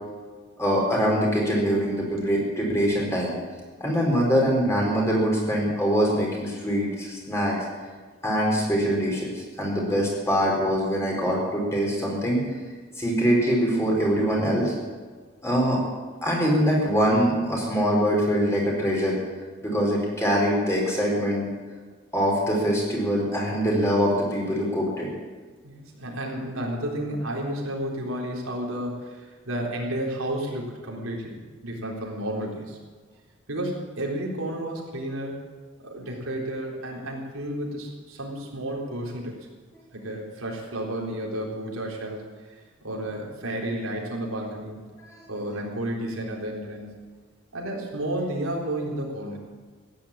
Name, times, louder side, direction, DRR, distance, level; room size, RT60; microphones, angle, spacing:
voice 1, 0.6-3.3 3.8-7.6 8.2-12.4 13.0-14.7 15.4-15.8 16.2-19.2 19.6-21.5 22.1-25.1, equal, 15° left, -2 dB, 4.3 m, -23 dB
voice 2, 25.6-32.8 33.5-35.3 35.8-39.4 39.9-44.8 45.3-47.0 47.5-49.4, right 1 dB, 85° right, -2 dB, 3.9 m, -32 dB
15.5 x 10.5 x 8.7 m, 1.5 s
head